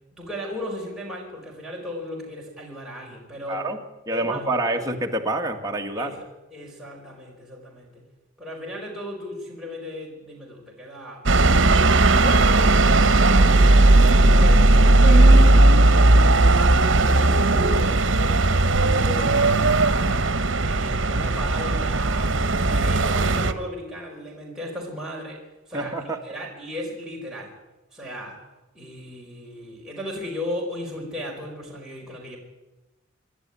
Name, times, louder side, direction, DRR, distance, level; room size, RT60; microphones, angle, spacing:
voice 1, 0.1-3.6 4.1-4.9 5.9-8.0 8.4-11.2 11.7-13.4 14.2-16.5 16.9-20.3 20.6-27.5 27.9-28.4 28.7-32.4, left 1 dB, 5° right, -4 dB, 4.8 m, -36 dB
voice 2, 3.5-3.8 4.1-6.1 25.7-26.2, right 2 dB, 20° right, 2 dB, 1.8 m, -27 dB
sound 1, 11.3-23.5, right 2 dB, 65° right, 1.2 m, -17 dB
27.0 x 12.0 x 9.7 m, 1.1 s
head